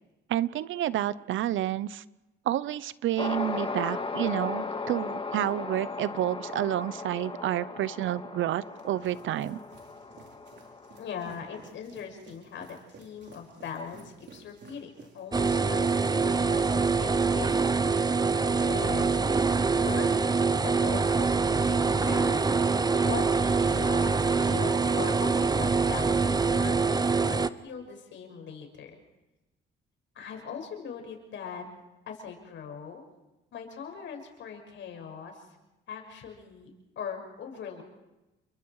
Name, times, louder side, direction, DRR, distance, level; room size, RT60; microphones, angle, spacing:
voice 1, 0.3-2.0 2.4-9.6, right 12 dB, 75° right, 17 dB, 0.8 m, -29 dB
sound 1, 3.2-11.7, left 4 dB, 25° left, 2.0 m, -37 dB
sound 2, 8.6-18.4 18.7-19.1, right 3 dB, 60° right, 4.9 m, -54 dB
voice 2, 11.0-17.5 18.1-19.2 19.7-20.3 20.6-22.4 23.0-29.0 30.1-31.6 32.1-33.0 33.5-35.4 35.9-36.7 36.9-37.8, left 7 dB, 70° left, 3 dB, 6.6 m, -40 dB
sound 3, 15.3-27.5, right 4 dB, 20° right, 0.8 m, -25 dB
29.5 x 24.0 x 4.9 m, 1.0 s
cardioid pair, 90°, 20 cm